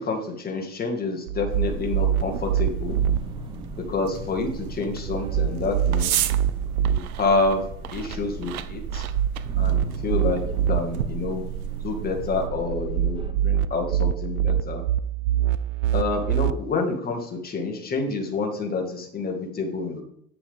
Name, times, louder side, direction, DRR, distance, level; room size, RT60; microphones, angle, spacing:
voice 1, 0.0-3.0 3.9-6.2 6.8-7.6 7.9-9.1 9.6-10.4 10.7-11.4 11.8-14.8 15.9-20.0, left 3 dB, 20° left, 2 dB, 1.9 m, -28 dB
sound 1, 1.3-3.2 5.1-7.0 8.9-10.8 12.7-16.5, right 10 dB, 50° right, 0.5 m, -24 dB
sound 2, 1.4-13.3, right 5 dB, 10° right, 0.7 m, -36 dB
sound 3, 1.5-12.5, right 11 dB, 75° right, 0.8 m, -36 dB
9.1 x 6.9 x 3.6 m, 0.72 s
hypercardioid pair, 95°, 44 cm